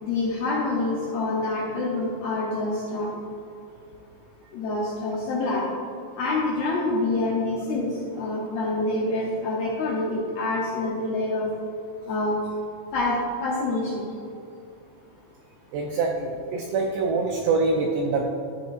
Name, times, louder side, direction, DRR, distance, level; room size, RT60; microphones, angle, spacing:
voice 1, 0.0-3.1 4.5-5.7 6.2-11.5 12.1-12.4 12.9-14.1, left 2 dB, 75° left, -5 dB, 2.3 m, -26 dB
voice 2, 15.7-18.2, right 3 dB, 85° right, 1 dB, 2.4 m, -25 dB
13.5 x 8.0 x 2.6 m, 2.6 s
omnidirectional pair, 5.8 m